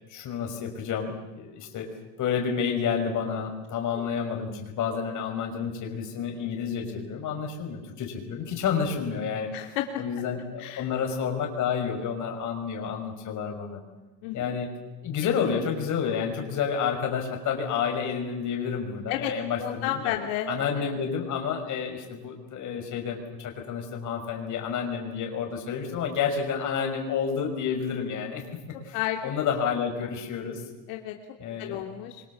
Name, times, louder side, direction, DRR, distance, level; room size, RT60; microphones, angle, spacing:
voice 1, 0.1-1.9 2.2-9.5 10.0-13.8 14.3-14.7 15.0-20.1 20.5-28.9 29.2-30.6 31.4-31.8, left 6 dB, 40° left, 3 dB, 5.8 m, -30 dB
voice 2, 9.5-10.0 10.6-10.9 14.2-14.5 19.1-19.3 19.6-20.5 20.8-20.9 28.9-29.3 30.9-31.2 31.6-32.2, left 12 dB, 75° left, 3 dB, 2.7 m, -31 dB
27.0 x 24.5 x 7.3 m, 1.2 s
cardioid pair, 155°, 45 cm